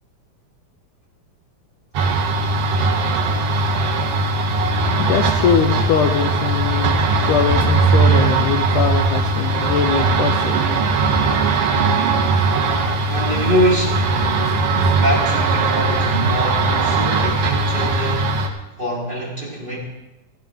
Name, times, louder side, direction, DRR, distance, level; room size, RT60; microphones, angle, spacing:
sound 1, 1.9-18.5, right 3 dB, 60° right, 1.7 m, -19 dB
voice 1, 4.0-10.7, left 7 dB, 75° left, 5 dB, 2.1 m, -22 dB
voice 2, 13.1-14.1 14.7-18.3 18.8-19.8, equal, 15° right, -3 dB, 3.2 m, -23 dB
17.0 x 14.5 x 3.7 m, 0.98 s
omnidirectional pair, 4.1 m